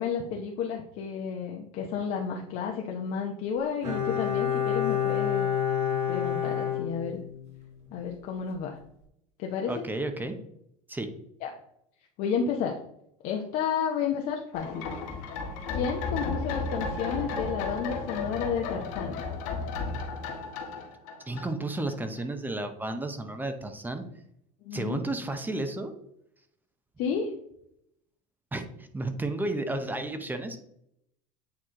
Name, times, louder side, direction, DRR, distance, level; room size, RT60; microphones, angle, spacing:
voice 1, 0.0-5.5 6.1-7.2 7.9-8.8 9.4-9.8 11.4-11.6 12.2-12.8 13.2-14.9 15.7-19.2 24.6-25.0 27.0-27.3, left 7 dB, 55° left, 1 dB, 0.9 m, -31 dB
Bowed string instrument, 3.8-7.6 7.9-8.0, left 9 dB, 40° right, 2.5 m, -28 dB
voice 2, 9.7-10.3 10.9-11.1 21.3-24.0 24.7-25.9 28.5-30.6, right 2 dB, 10° right, 7 dB, 0.7 m, -32 dB
sound 1, 14.5-21.9 22.2-22.3, left 4 dB, 75° left, 1.5 m, -33 dB
8.8 x 3.1 x 3.8 m, 0.74 s
supercardioid pair, 120°, 17 cm